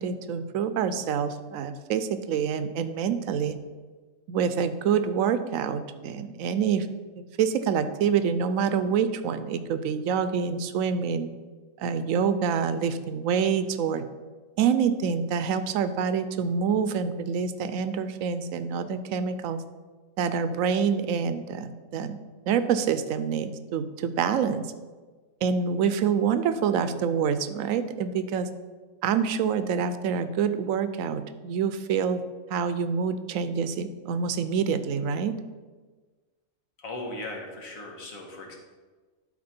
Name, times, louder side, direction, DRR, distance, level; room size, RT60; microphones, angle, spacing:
voice 1, 0.0-3.6 4.3-6.9 7.4-11.3 11.8-14.0 14.6-19.6 20.2-22.2 22.5-24.7 25.4-28.5 29.0-32.2 32.5-35.4, right 7 dB, 80° right, 11 dB, 1.0 m, -26 dB
voice 2, 36.8-38.6, left 2 dB, 85° left, 1 dB, 1.8 m, -38 dB
11.5 x 4.3 x 4.3 m, 1.4 s
omnidirectional pair, 1.4 m